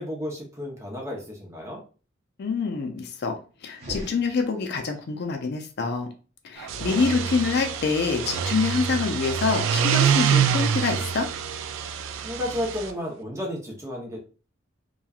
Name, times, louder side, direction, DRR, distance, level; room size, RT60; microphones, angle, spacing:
voice 1, 0.0-1.8 12.2-14.2, left 1 dB, 15° right, -1 dB, 0.7 m, -32 dB
voice 2, 2.4-6.1 6.4-11.3, left 4 dB, 55° left, 4 dB, 0.4 m, -26 dB
sound 1, 3.7-5.0, equal, 35° right, 1.2 m, -40 dB
sound 2, 6.6-12.9, right 7 dB, 80° right, 0.3 m, -25 dB
3.0 x 2.3 x 2.3 m, 0.36 s
head